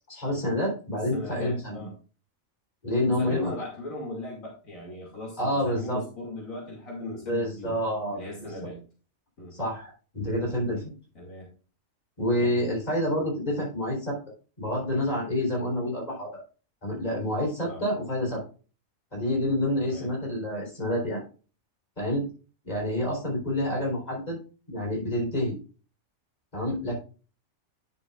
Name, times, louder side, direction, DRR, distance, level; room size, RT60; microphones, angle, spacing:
voice 1, 0.1-1.9 2.8-3.5 5.4-6.0 7.3-8.5 9.5-10.9 12.2-14.2 14.6-16.4 16.8-18.4 19.1-21.2 22.0-22.3 22.6-24.4 24.7-25.6 26.5-27.0, left 1 dB, 30° left, -1 dB, 3.9 m, -28 dB
voice 2, 1.1-1.9 3.0-7.8 8.1-8.8 9.4-9.6 11.1-11.5 12.4-12.6 17.6-17.8 19.9-20.1, left 2 dB, 75° left, -2 dB, 2.8 m, -38 dB
10.0 x 7.1 x 2.4 m, 0.36 s
omnidirectional pair, 1.4 m